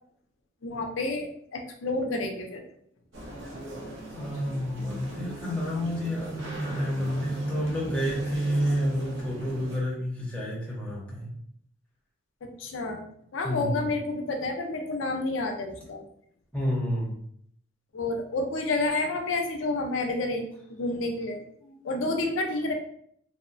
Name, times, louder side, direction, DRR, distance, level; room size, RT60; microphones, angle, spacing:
voice 1, 0.6-2.6 12.4-13.0 13.3-16.0 17.9-20.4 20.7-21.4 21.8-22.7, left 2 dB, 70° left, 4 dB, 0.5 m, -29 dB
sound 1, 3.1-9.8, right 1 dB, 70° right, 0.7 m, -40 dB
voice 2, 4.1-11.3 13.4-13.8 16.5-17.1 21.6-21.7, equal, 5° left, -5 dB, 0.7 m, -29 dB
2.9 x 2.0 x 2.4 m, 0.66 s
head